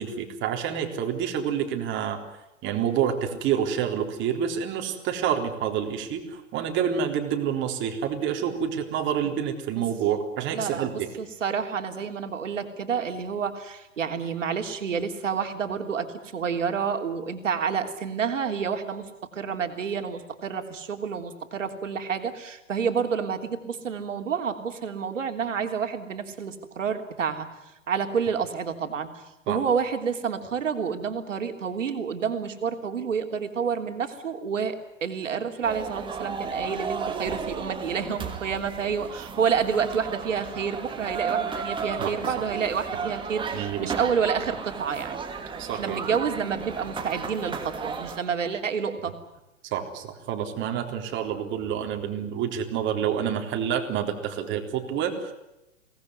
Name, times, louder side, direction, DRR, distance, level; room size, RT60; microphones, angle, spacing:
voice 1, 0.0-2.2 2.6-11.1 29.5-29.6 42.0-42.1 42.9-43.0 43.5-44.1 45.6-46.0 49.6-55.3, right 8 dB, 30° right, 4 dB, 3.8 m, -28 dB
voice 2, 10.5-27.5 27.9-45.2 45.7-49.1, right 6 dB, 75° right, 5 dB, 3.4 m, -29 dB
sound 1, 35.6-48.2, right 5 dB, 15° right, 2.7 m, -34 dB
24.0 x 19.0 x 9.5 m, 0.94 s
hypercardioid pair, 115°, 38 cm